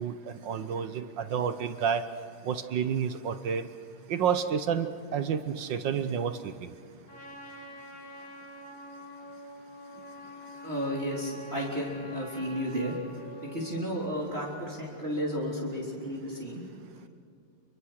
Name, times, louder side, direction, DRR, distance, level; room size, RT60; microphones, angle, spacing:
voice 1, 0.0-2.0 2.4-3.7 4.1-6.7, right 7 dB, 60° right, 10 dB, 1.5 m, -30 dB
Trumpet, 7.1-14.7, equal, 70° left, 4.8 m, -46 dB
voice 2, 10.6-12.9 13.4-16.6, equal, 25° right, -4 dB, 3.8 m, -33 dB
27.5 x 23.5 x 6.5 m, 2.5 s
omnidirectional pair, 2.4 m